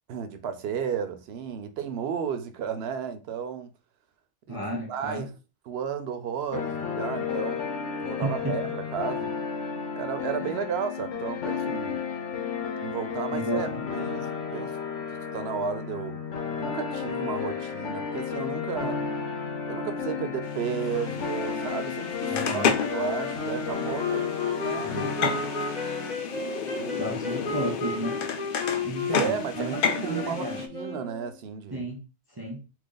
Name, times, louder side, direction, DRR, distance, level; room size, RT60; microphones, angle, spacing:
voice 1, 0.1-3.7 4.5-4.6 4.9-5.3 5.7-7.7 8.0-9.3 10.0-12.0 12.8-14.8 15.1-16.2 16.5-19.0 19.7-22.6 22.9-25.4 26.8-27.0 29.1-31.8, right 7 dB, 65° right, 0.8 m, -33 dB
voice 2, 4.5-5.3 8.2-8.7 10.4-10.6 13.3-13.8 22.3-22.8 24.8-25.4 27.0-28.3 28.8-30.6 31.7-32.0 32.3-32.6, right 1 dB, 35° right, 0.4 m, -33 dB
sound 1, 6.5-26.1, left 6 dB, 90° left, 1.1 m, -32 dB
sound 2, 20.4-30.7, left 7 dB, 60° left, 0.6 m, -32 dB
sound 3, 22.2-31.4, left 3 dB, 40° left, 0.9 m, -34 dB
2.9 x 2.6 x 3.7 m
omnidirectional pair, 1.2 m